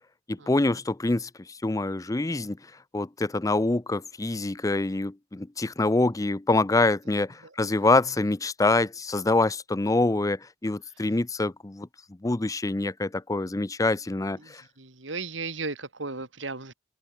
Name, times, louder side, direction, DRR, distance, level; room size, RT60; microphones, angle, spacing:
voice 1, 0.3-1.3 1.6-2.6 2.9-11.9 12.2-14.6, left 2 dB, 20° left, 0.5 m, -25 dB
voice 2, 14.4-16.7, right 3 dB, 85° right, 3.2 m, -36 dB
head